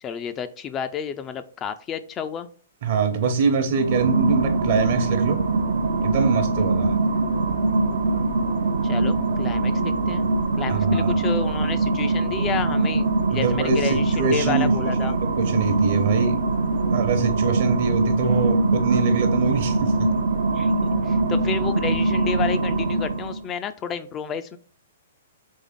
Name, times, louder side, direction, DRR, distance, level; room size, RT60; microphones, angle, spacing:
voice 1, 0.0-2.5 8.8-10.2 10.6-15.1 20.5-24.6, left 7 dB, 25° left, 0.3 m, -31 dB
voice 2, 2.8-5.4 6.0-6.9 10.7-11.3 13.3-16.4 16.9-20.1, right 5 dB, 55° right, 0.9 m, -24 dB
sound 1, 3.7-23.4, right 2 dB, 75° right, 0.6 m, -22 dB
3.6 x 3.4 x 3.6 m
hypercardioid pair, 125°, 0 cm